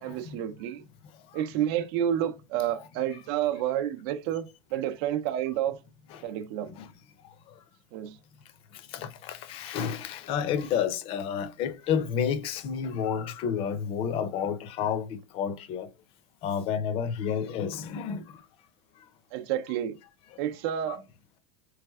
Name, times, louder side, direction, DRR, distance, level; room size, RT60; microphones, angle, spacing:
voice 1, 0.0-0.8 1.3-4.5 4.7-5.8 6.2-6.7 7.9-8.2 19.3-20.0 20.4-21.0, right 11 dB, 60° right, 0.5 m, -29 dB
voice 2, 8.9-15.9 16.4-18.3 20.9-21.0, left 7 dB, 40° left, 0.6 m, -30 dB
3.3 x 3.3 x 3.5 m
supercardioid pair, 160°, 15 cm